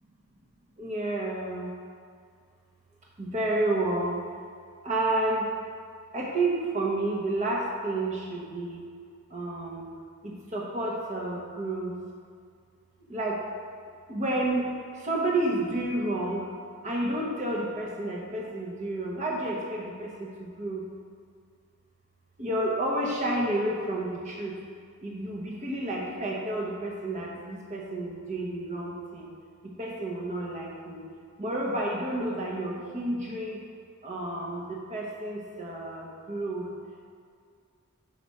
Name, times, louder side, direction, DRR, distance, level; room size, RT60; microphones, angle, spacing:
voice 1, 0.8-1.7 3.2-4.2 4.8-5.5 6.1-8.8 9.3-9.9 10.2-12.0 13.1-13.4 14.1-14.6 15.0-16.5 16.8-20.8 22.4-24.6 25.0-29.3 29.8-31.0 31.4-33.6 34.0-36.7, right 1 dB, 35° right, -2 dB, 1.0 m, -30 dB
5.9 x 5.0 x 4.3 m, 2.2 s
head